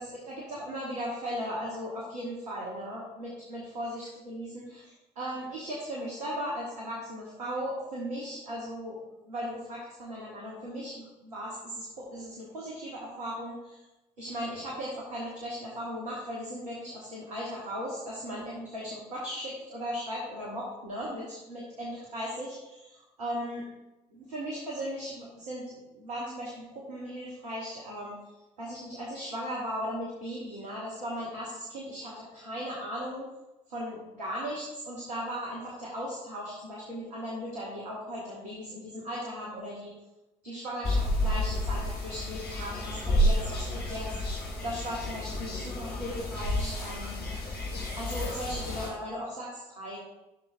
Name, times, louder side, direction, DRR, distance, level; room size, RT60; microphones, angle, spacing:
voice 1, 0.2-9.0 9.3-13.8 14.2-23.7 24.1-28.2 28.6-33.3 33.7-39.9 40.4-47.2 48.0-50.0, equal, 80° right, -5 dB, 1.3 m, -37 dB
sound 1, 40.8-48.9, equal, 55° left, 1.6 m, -30 dB
11.5 x 6.2 x 2.7 m, 0.99 s
figure-of-eight pair, 40°, 20 cm